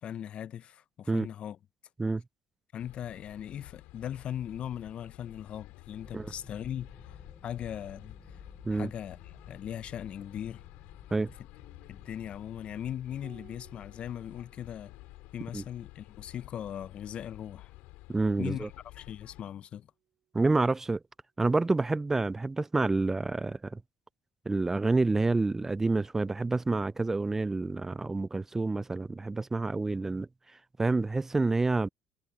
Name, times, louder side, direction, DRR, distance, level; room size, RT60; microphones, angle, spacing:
voice 1, 0.0-1.6 2.7-6.9 7.4-8.4 8.7-9.2 9.5-10.6 11.9-14.9 15.3-17.7 18.4-19.9, left 10 dB, 50° left, 0.5 m, -39 dB
sound 1, 2.8-19.4, left 21 dB, 85° left, 4.6 m, -51 dB
sound 2, 6.0-13.9, left 2 dB, 15° left, 3.4 m, -55 dB
Piano, 13.2-18.1 19.7-20.5, right 12 dB, 65° right, 2.6 m, -62 dB
voice 2, 18.1-18.7 20.3-21.0 21.4-23.8 24.5-30.3 30.8-31.9, right 3 dB, 15° right, 0.3 m, -28 dB
supercardioid pair, 90°, 2 cm